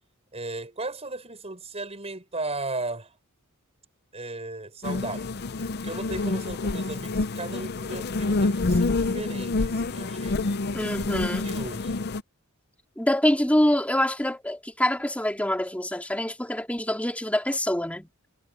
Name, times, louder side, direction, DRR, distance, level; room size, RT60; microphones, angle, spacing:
voice 1, 0.3-3.2 4.1-10.4 11.0-11.9, right 2 dB, 30° right, 6.9 m, -36 dB
sound 1, 4.8-12.2, left 3 dB, 50° left, 0.6 m, -27 dB
voice 2, 10.7-11.5 13.0-18.1, left 1 dB, 5° left, 3.3 m, -25 dB
head